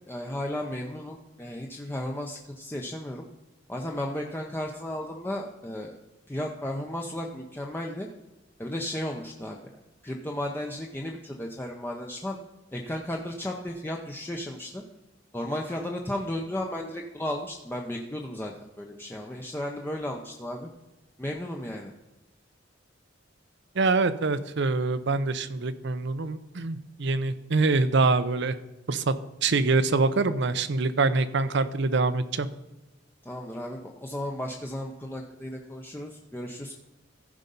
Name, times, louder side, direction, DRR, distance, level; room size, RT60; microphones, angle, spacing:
voice 1, 0.1-3.2 3.7-6.0 6.3-8.1 8.6-9.6 10.0-12.4 12.7-14.8 15.3-20.7 21.2-21.9 33.2-36.8, left 1 dB, 10° left, 0 dB, 0.7 m, -34 dB
voice 2, 23.8-28.6 28.9-29.1 29.4-32.5, right 3 dB, 65° right, 13 dB, 0.7 m, -25 dB
15.0 x 5.2 x 5.4 m, 1.0 s
head